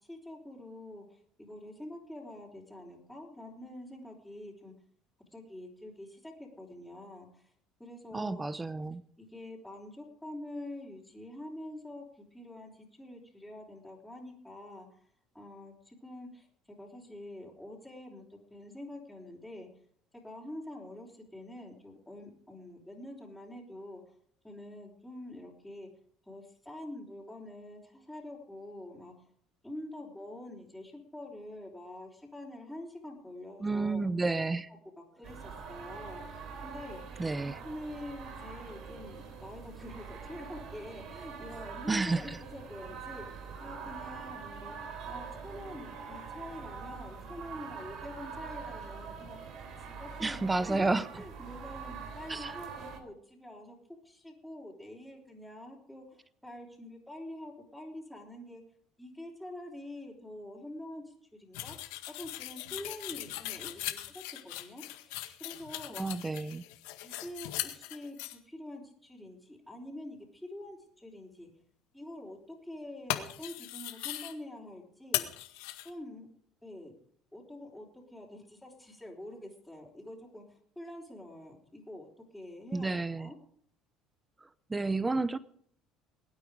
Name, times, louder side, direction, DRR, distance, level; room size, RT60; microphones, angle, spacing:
voice 1, 0.1-4.7 5.3-7.5 7.8-8.4 9.2-14.9 15.3-19.7 20.2-24.2 24.4-25.9 26.2-29.3 29.6-34.0 35.0-36.2 36.6-53.8 54.0-58.6 59.0-61.8 62.1-66.1 67.0-71.5 71.9-75.3 75.8-76.3 76.6-76.9 77.3-83.3, left 1 dB, ahead, -6 dB, 4.4 m, -46 dB
voice 2, 8.1-9.0 33.6-34.7 37.2-37.6 41.9-42.4 50.2-51.1 52.3-52.6 65.9-66.6 82.7-83.3 84.7-85.4, right 3 dB, 15° right, 16 dB, 0.8 m, -31 dB
sound 1, 35.2-53.0, right 5 dB, 65° right, 3.4 m, -44 dB
sound 2, 61.5-68.4 73.1-74.3 75.1-75.9, left 16 dB, 85° left, 1.8 m, -39 dB
22.0 x 9.3 x 5.1 m, 0.63 s
supercardioid pair, 90°, 0 cm